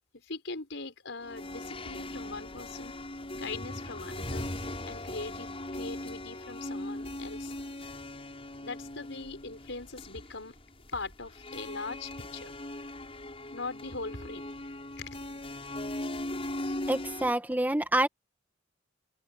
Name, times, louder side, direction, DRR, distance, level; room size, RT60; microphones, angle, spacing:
voice 1, 0.1-2.9 3.4-4.5 4.9-7.5 8.6-10.5 10.9-12.5 13.5-14.5 15.0-15.2, left 3 dB, 70° left, 6.7 m, -41 dB
sound 1, 1.2-17.3, left 1 dB, 30° left, 7.0 m, -39 dB
voice 2, 16.9-18.1, right 1 dB, 10° right, 1.8 m, -27 dB
open air
head